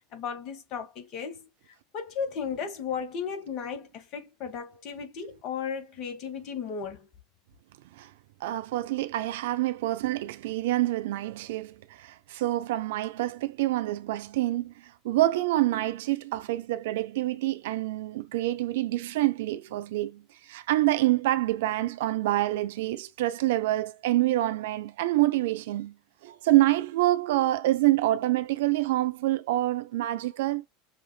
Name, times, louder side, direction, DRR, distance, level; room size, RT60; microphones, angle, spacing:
voice 1, 0.1-1.5 1.9-7.1, left 6 dB, 45° left, 1.6 m, -35 dB
voice 2, 8.4-14.7 15.0-20.2 20.5-25.9 26.2-30.7, right 16 dB, 65° right, 0.5 m, -26 dB
6.5 x 2.7 x 2.3 m
figure-of-eight pair, 80°, 0 cm